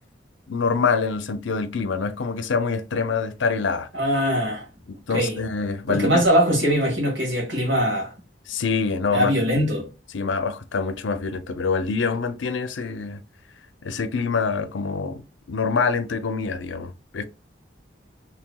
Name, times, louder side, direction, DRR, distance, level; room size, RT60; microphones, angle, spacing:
voice 1, 0.5-3.9 4.9-6.2 8.5-9.4 10.1-13.2 13.8-17.3, left 5 dB, 80° left, 0.6 m, -25 dB
voice 2, 3.9-4.7 5.1-5.4 5.9-8.1 9.1-9.9, equal, 80° right, 2.0 m, -21 dB
4.7 x 3.3 x 2.2 m
head